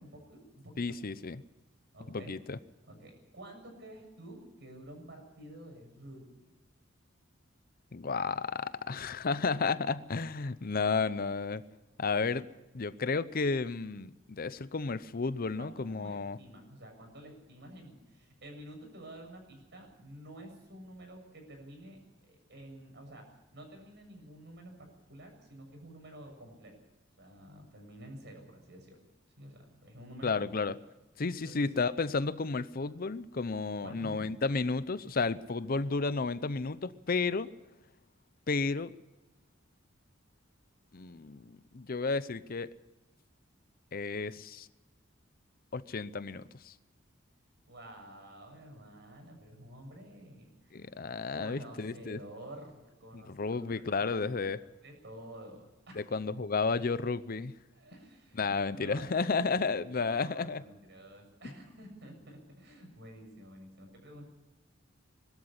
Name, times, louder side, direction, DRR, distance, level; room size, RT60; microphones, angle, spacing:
voice 1, 0.0-0.8 1.9-2.3 2.9-6.5 15.6-23.3 23.5-26.8 27.2-29.0 29.4-30.6 31.5-31.7 33.8-34.4 47.7-50.9 51.3-54.2 54.5-56.1 57.7-64.3, right 1 dB, 60° right, 3 dB, 7.1 m, -50 dB
voice 2, 0.8-1.4 2.1-2.6 7.9-11.6 12.0-12.5 12.7-16.4 30.2-30.7 31.2-37.5 38.5-39.0 40.9-42.7 43.9-44.7 45.7-46.7 50.7-52.2 53.1-54.6 56.0-57.5 58.4-60.6, left 4 dB, 50° left, 15 dB, 0.7 m, -32 dB
21.0 x 13.0 x 9.9 m, 1.0 s
head